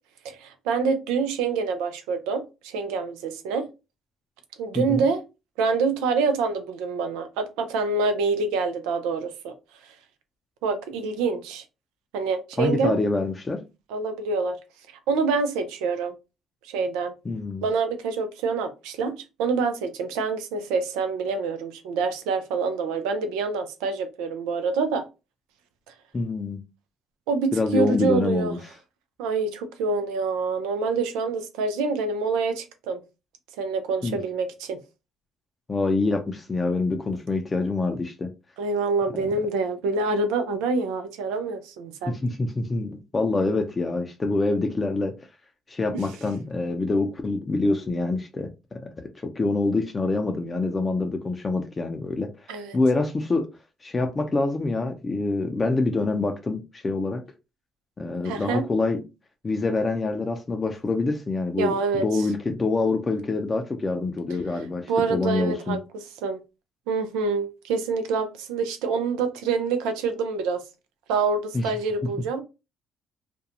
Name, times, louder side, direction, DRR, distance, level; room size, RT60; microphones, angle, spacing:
voice 1, 0.2-3.7 4.6-5.2 5.6-9.5 10.6-11.6 12.1-13.0 13.9-14.6 15.1-16.1 16.7-17.1 17.6-25.0 27.3-28.5 29.2-33.0 33.6-34.8 38.6-42.2 45.9-46.0 52.5-52.8 58.2-58.6 61.6-62.3 64.9-65.8 66.2-66.4 66.9-70.6 71.1-72.4, right 4 dB, 80° right, 0.5 m, -26 dB
voice 2, 12.6-13.6 17.3-17.6 26.1-26.6 27.5-28.6 34.0-34.2 35.7-38.3 42.1-45.1 45.7-48.8 49.2-52.3 52.7-53.5 53.8-57.2 58.0-59.0 59.4-65.8 71.5-71.6, left 3 dB, 30° left, 0.5 m, -26 dB
2.5 x 2.2 x 2.8 m
hypercardioid pair, 60°, 0 cm